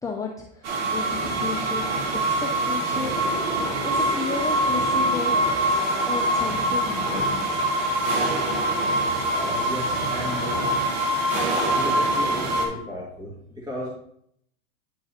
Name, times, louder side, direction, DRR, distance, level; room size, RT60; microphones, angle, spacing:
voice 1, 0.0-1.9 2.3-3.6 3.8-5.3 6.1-7.5, left 4 dB, 10° left, -2 dB, 0.8 m, -33 dB
sound 1, 0.6-12.7, right 1 dB, 65° right, 2.1 m, -24 dB
voice 2, 9.1-10.7 11.6-13.9, left 1 dB, 10° right, -5 dB, 1.9 m, -34 dB
9.7 x 4.7 x 2.8 m, 0.71 s
hypercardioid pair, 110°, 37 cm